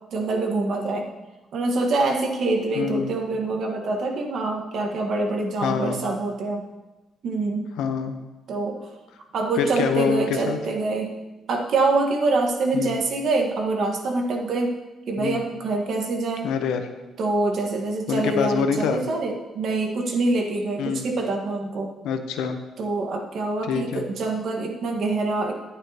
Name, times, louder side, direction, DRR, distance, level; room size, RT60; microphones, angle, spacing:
voice 1, 0.1-1.1 1.5-6.6 7.2-7.7 8.5-8.9 9.3-11.1 11.5-14.7 15.1-16.5 17.2-21.9 22.8-25.5, right 3 dB, 65° right, 2 dB, 1.5 m, -25 dB
voice 2, 2.7-3.1 5.6-6.1 7.8-8.2 9.6-10.6 12.7-12.9 15.2-15.4 16.4-16.9 18.1-19.0 20.8-21.0 22.0-22.6 23.7-24.0, left 6 dB, 90° left, 7 dB, 0.8 m, -25 dB
11.0 x 9.0 x 2.9 m, 1.1 s
cardioid pair, 90°, 0 cm